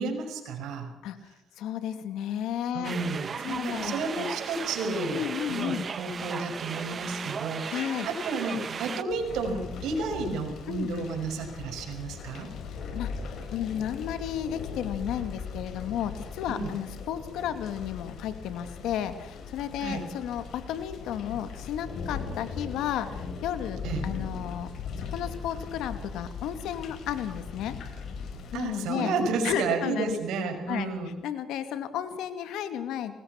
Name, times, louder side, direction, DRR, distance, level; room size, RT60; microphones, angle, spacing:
voice 1, 0.0-0.9 2.7-12.5 16.5-16.7 19.8-20.0 23.8-24.0 28.5-31.1, right 3 dB, 85° right, 5 dB, 5.9 m, -32 dB
voice 2, 1.0-2.9 3.4-4.3 5.1-5.9 7.7-8.1 10.7-10.9 12.7-24.7 25.1-27.8 28.5-29.1 29.4-30.2 30.7-30.9 31.2-33.1, left 10 dB, 90° left, 9 dB, 2.5 m, -33 dB
sound 1, 2.8-9.0, right 6 dB, 45° right, 1.2 m, -36 dB
sound 2, 9.1-28.6, left 5 dB, 70° left, 5.5 m, -39 dB
25.0 x 20.5 x 6.0 m, 0.96 s
cardioid pair, 90°, 0 cm